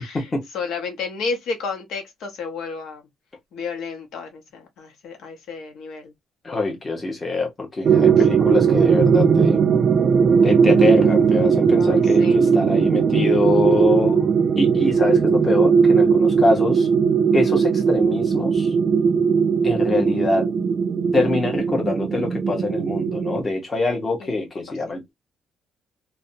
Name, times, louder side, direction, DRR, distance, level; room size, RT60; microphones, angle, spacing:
voice 1, 0.0-3.0 3.5-6.1 8.2-8.3 11.7-12.4 16.4-16.6 24.2-24.5, left 4 dB, 80° left, 0.8 m, -32 dB
voice 2, 6.4-9.6 10.4-14.3 14.6-16.9 17.3-18.7 19.6-20.5 21.1-25.1, left 3 dB, 25° left, 0.9 m, -24 dB
sound 1, 7.8-23.4, right 6 dB, 40° right, 0.4 m, -18 dB
2.6 x 2.2 x 2.6 m
cardioid pair, 135°, 0 cm